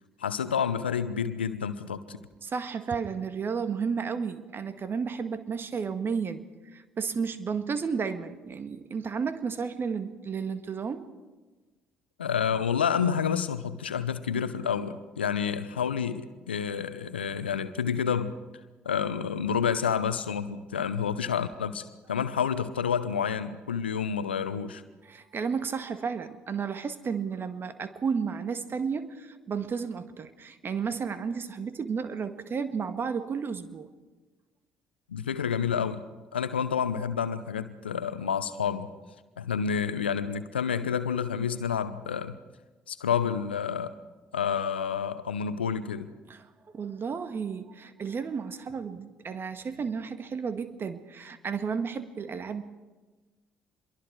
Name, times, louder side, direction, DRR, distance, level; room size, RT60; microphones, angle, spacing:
voice 1, 0.2-2.2 12.2-18.4 18.8-24.8 35.1-36.0 36.3-38.9 39.4-42.4 42.9-43.9 44.3-46.1, left 7 dB, 90° left, 0.8 m, -29 dB
voice 2, 2.4-11.1 25.0-33.9 46.3-52.6, right 6 dB, 40° right, 1.7 m, -32 dB
26.0 x 22.5 x 4.7 m
hypercardioid pair, 50°, 5 cm